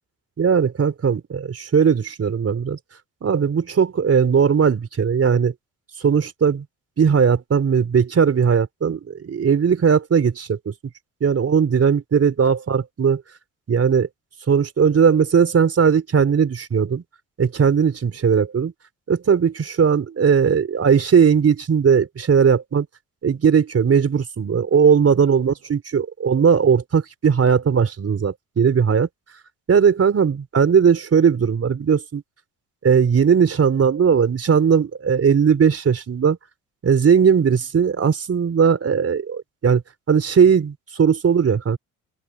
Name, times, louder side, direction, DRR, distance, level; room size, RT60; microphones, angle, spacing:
voice 1, 0.4-2.8 3.2-5.5 6.0-6.6 7.0-10.6 11.2-13.2 13.7-14.1 14.5-17.0 17.4-18.7 19.1-22.9 23.2-29.1 29.7-32.2 32.8-36.4 36.8-39.8 40.1-41.8, right 6 dB, 45° right, 4.1 m, -18 dB
open air
cardioid pair, 80°, 34 cm